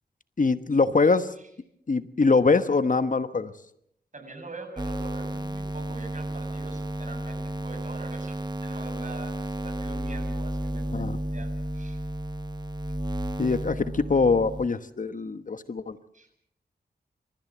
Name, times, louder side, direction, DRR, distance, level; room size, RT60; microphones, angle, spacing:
voice 1, 0.4-1.3 1.9-3.5 10.9-11.2 13.4-16.0, left 4 dB, 50° left, 11 dB, 1.2 m, -23 dB
voice 2, 4.1-8.3 8.6-11.0 11.3-12.0 16.1-16.4, right 3 dB, 45° right, 5 dB, 7.7 m, -44 dB
sound 1, 4.8-14.7, right 1 dB, 25° right, 1.2 m, -32 dB
27.0 x 15.0 x 7.4 m, 0.74 s
cardioid pair, 50°, 17 cm